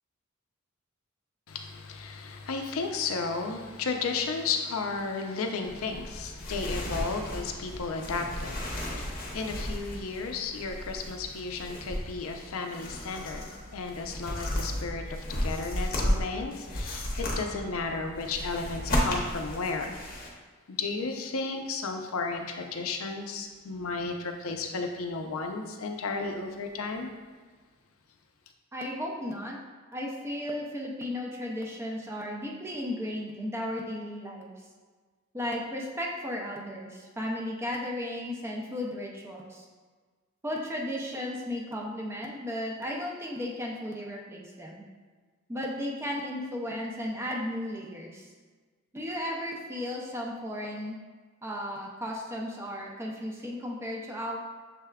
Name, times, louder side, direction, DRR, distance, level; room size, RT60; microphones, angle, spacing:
voice 1, 1.5-20.0 20.7-27.1, left 4 dB, 80° left, 4 dB, 0.5 m, -34 dB
sound 1, 5.6-20.3, equal, 45° left, 0.7 m, -34 dB
voice 2, 28.7-29.6 29.9-34.5 35.3-39.7 40.4-44.8 45.5-48.3 48.9-51.0 51.4-54.4, left 1 dB, 10° right, -2 dB, 0.4 m, -35 dB
6.5 x 3.4 x 2.2 m, 1.4 s
head